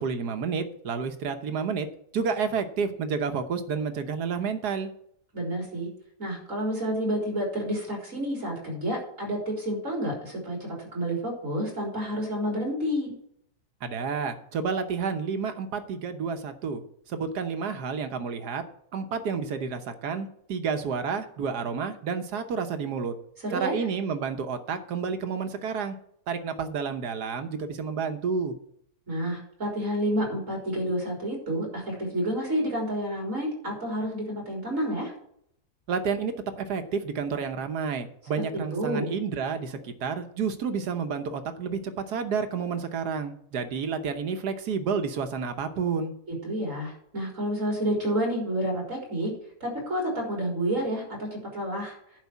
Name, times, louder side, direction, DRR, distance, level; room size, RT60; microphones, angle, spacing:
voice 1, 0.0-1.9 2.1-4.9 13.8-16.8 17.1-18.6 18.9-23.1 23.5-25.9 26.3-28.5 35.9-46.1, right 5 dB, 85° right, 8 dB, 1.6 m, -30 dB
voice 2, 5.3-5.9 6.2-13.1 23.4-23.7 29.1-35.1 38.5-39.1 46.3-49.3 49.6-51.9, equal, 55° right, -2 dB, 4.5 m, -29 dB
11.0 x 5.0 x 8.2 m, 0.69 s
omnidirectional pair, 1.7 m